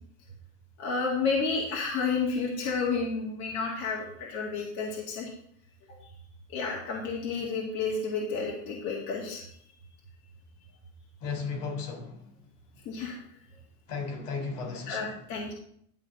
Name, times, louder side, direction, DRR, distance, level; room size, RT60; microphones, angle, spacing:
voice 1, 0.8-5.3 5.9-6.0 6.5-9.4 12.9-13.2 14.9-15.5, left 4 dB, 40° left, 2.1 m, -31 dB
voice 2, 11.2-12.2 13.9-15.1, left 4 dB, 70° left, 3.9 m, -35 dB
11.5 x 3.9 x 7.7 m
supercardioid pair, 165°, 46 cm